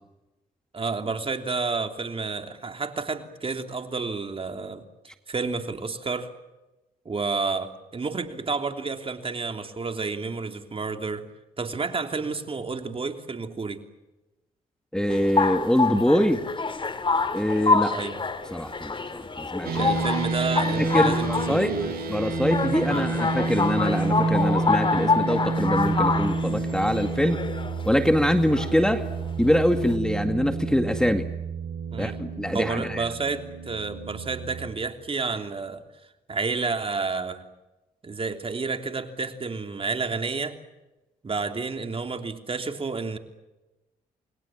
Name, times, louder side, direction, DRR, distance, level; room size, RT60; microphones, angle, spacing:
voice 1, 0.7-4.8 5.3-6.3 7.0-11.3 11.6-13.8 17.9-18.2 19.7-22.0 22.9-23.1 31.9-32.2 32.5-35.8 36.3-37.4 38.0-40.6 41.2-43.2, right 4 dB, 35° right, 6 dB, 3.2 m, -30 dB
voice 2, 14.9-16.4 17.3-17.9 18.5-19.9 20.8-21.8 22.1-27.4 27.8-29.1 29.4-31.3 32.0-33.0, equal, 5° left, 7 dB, 2.1 m, -24 dB
sound 1, 15.1-29.9, left 4 dB, 35° left, 2.4 m, -27 dB
sound 2, 19.6-34.7, right 3 dB, 80° right, 4.5 m, -29 dB
29.0 x 21.5 x 7.4 m, 1.0 s
cardioid pair, 85°, 16 cm